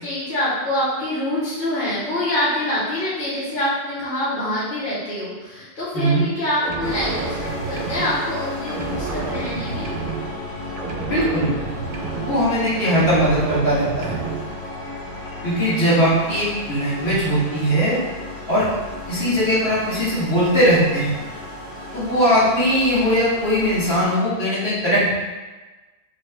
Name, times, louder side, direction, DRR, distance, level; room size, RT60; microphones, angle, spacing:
voice 1, 0.0-9.9, left 1 dB, 55° left, -10 dB, 1.1 m, -25 dB
sound 1, 6.6-8.4 8.7-10.5 10.8-12.6 12.8-14.5, right 5 dB, 65° right, 0.7 m, -30 dB
sound 2, 6.8-24.0, left 2 dB, 30° left, 0.4 m, -34 dB
voice 2, 11.0-11.5 12.2-14.1 15.4-18.0 18.5-18.7 19.1-21.1 21.9-25.1, equal, 75° left, -10 dB, 1.6 m, -19 dB
3.1 x 2.7 x 3.3 m, 1.2 s
omnidirectional pair, 1.1 m